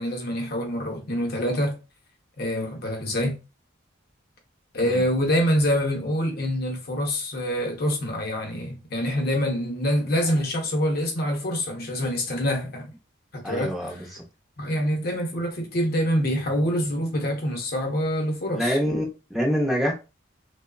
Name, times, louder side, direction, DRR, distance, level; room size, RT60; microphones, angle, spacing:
voice 1, 0.0-1.8 2.4-3.4 4.7-12.9 13.3-14.1 14.6-18.8, equal, 50° left, 0.6 m, -26 dB
voice 2, 13.4-14.2 18.5-19.9, equal, ahead, 0.4 m, -26 dB
2.9 x 2.0 x 2.3 m
head